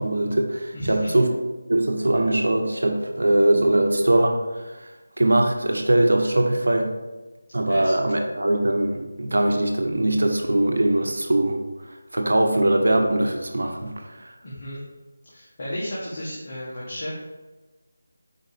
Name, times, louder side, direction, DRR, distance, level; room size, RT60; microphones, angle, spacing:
voice 1, 0.0-1.3 1.7-4.9 5.2-6.9 7.5-11.6 12.1-14.3, right 1 dB, 90° right, 3 dB, 1.0 m, -21 dB
voice 2, 0.7-1.1 7.7-8.0 14.4-14.8 15.2-17.1, equal, 35° left, -7 dB, 1.3 m, -33 dB
5.0 x 4.0 x 5.0 m, 1.2 s
figure-of-eight pair, 175°, 0 cm